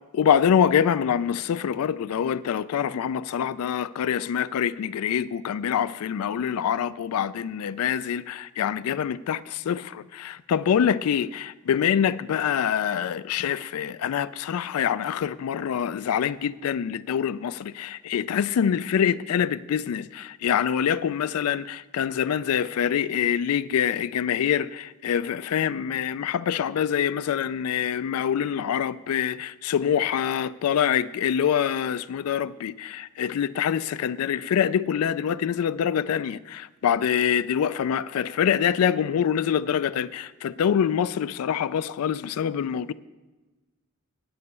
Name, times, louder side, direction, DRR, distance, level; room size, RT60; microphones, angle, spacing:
voice 1, 0.1-42.9, left 8 dB, 80° left, 0.3 m, -25 dB
9.4 x 5.6 x 8.0 m
head